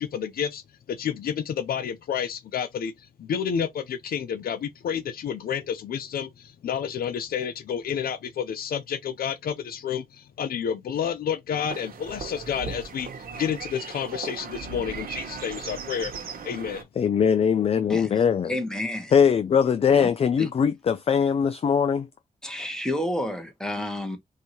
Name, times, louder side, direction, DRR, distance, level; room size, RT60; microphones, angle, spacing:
voice 1, 0.0-16.1 16.4-16.9, left 8 dB, 90° left, 0.6 m, -30 dB
sound 1, 11.7-16.8, right 5 dB, 85° right, 1.1 m, -37 dB
voice 2, 17.0-18.5 19.1-22.1, left 7 dB, 40° left, 0.4 m, -21 dB
voice 3, 18.5-19.1 20.0-20.1 20.4-20.5 22.4-24.2, left 1 dB, 5° left, 1.3 m, -30 dB
4.9 x 2.7 x 2.9 m
wide cardioid pair, 105°, 15 cm